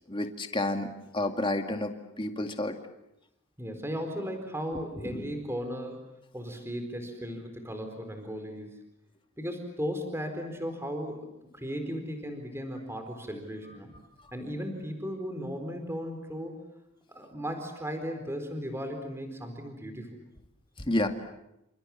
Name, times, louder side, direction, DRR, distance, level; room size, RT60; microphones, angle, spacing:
voice 1, 0.1-2.8 5.0-5.3 20.8-21.1, left 1 dB, 20° left, 5 dB, 2.1 m, -30 dB
voice 2, 3.6-6.1 6.3-8.8 9.4-13.9 14.3-16.6 17.1-20.2, equal, 10° right, 6 dB, 4.2 m, -36 dB
29.0 x 27.5 x 7.4 m, 0.87 s
head